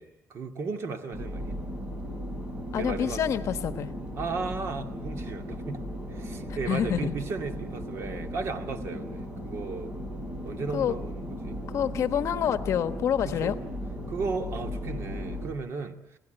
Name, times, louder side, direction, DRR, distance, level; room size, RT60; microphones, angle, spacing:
voice 1, 0.0-1.6 2.8-3.2 4.2-10.0 10.4-11.6 13.2-13.6 14.1-16.2, right 4 dB, 55° right, 2.3 m, -35 dB
sound 1, 1.1-15.5, equal, 20° right, 6.2 m, -36 dB
voice 2, 2.7-3.9 6.7-7.1 10.7-10.9 11.7-13.5, left 9 dB, 65° left, 1.1 m, -27 dB
27.5 x 19.0 x 7.9 m
cardioid pair, 150°, 5 cm